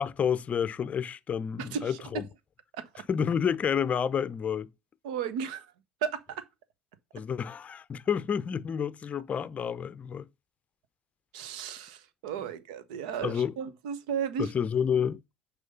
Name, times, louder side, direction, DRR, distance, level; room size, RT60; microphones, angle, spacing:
voice 1, 0.0-2.2 3.1-4.7 7.1-10.3 13.2-13.5 14.4-15.2, left 7 dB, 35° left, 0.5 m, -29 dB
voice 2, 1.6-2.0 2.7-2.9 5.0-5.6 6.0-6.4 11.3-14.5, right 7 dB, 70° right, 1.0 m, -34 dB
6.4 x 4.9 x 5.4 m
hypercardioid pair, 75°, 4 cm